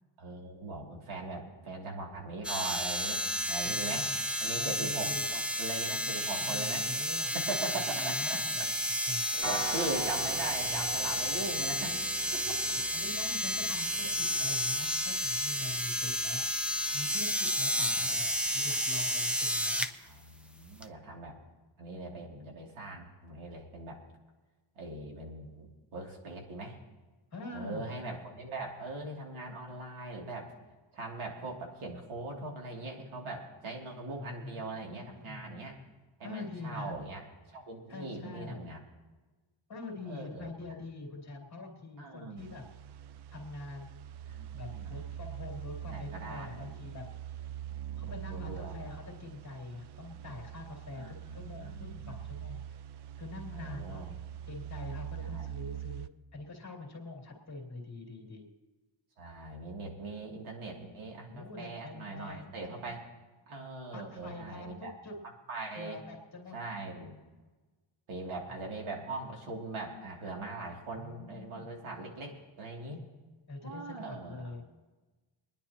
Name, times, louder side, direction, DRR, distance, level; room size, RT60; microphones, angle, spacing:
voice 1, 0.2-3.2 3.5-4.1 4.4-6.8 7.3-8.7 9.3-12.0 12.3-12.6 14.0-14.2 17.7-18.2 20.0-21.4 21.8-24.0 24.8-26.8 27.5-30.5 30.9-35.7 36.2-37.2 37.5-38.8 40.0-40.5 42.0-42.4 44.3-45.0 45.8-46.8 47.7-48.7 51.0-52.2 53.5-54.0 55.2-55.5 59.2-63.0 63.5-64.9 65.5-66.0 66.5-67.2 68.1-73.0 73.6-74.5, right 2 dB, 80° right, 0 dB, 2.7 m, -41 dB
sound 1, 2.4-19.9 20.8-20.9, equal, 5° right, 0.3 m, -31 dB
voice 2, 3.6-4.1 4.5-5.3 6.3-7.3 7.9-9.5 10.6-10.9 12.4-16.5 16.9-19.9 27.3-28.0 34.2-35.5 36.2-36.9 37.9-38.7 39.7-42.6 43.3-44.0 44.5-47.0 48.0-52.6 53.2-54.1 54.5-58.5 61.2-62.4 62.7-63.0 63.9-65.2 65.8-66.6 71.0-71.8 73.5-74.6, left 3 dB, 35° left, -1 dB, 2.5 m, -44 dB
sound 2, 9.4-19.0, right 2 dB, 30° right, 2.1 m, -45 dB
sound 3, 42.4-56.1, right 10 dB, 60° right, 0.5 m, -43 dB
25.5 x 10.5 x 2.9 m, 1.2 s
wide cardioid pair, 170°, 48 cm